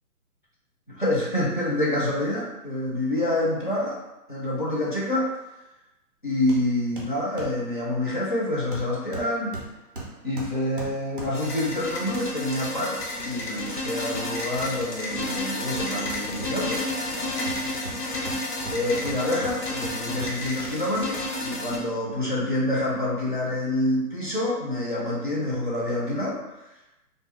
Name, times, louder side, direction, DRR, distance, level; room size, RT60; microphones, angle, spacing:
voice 1, 0.9-4.0 4.3-5.3 6.2-9.6 10.2-17.4 18.7-26.6, left 1 dB, 35° left, -5 dB, 0.4 m, -27 dB
Hammer, 6.5-6.7 7.0-7.6 8.7-11.6 15.4-16.9 17.5-20.6 21.0-21.1, right 2 dB, 35° right, 0.5 m, -39 dB
sound 1, 11.3-21.8, left 1 dB, 85° left, 0.9 m, -31 dB
2.5 x 2.3 x 2.9 m, 0.97 s
hypercardioid pair, 160°, 48 cm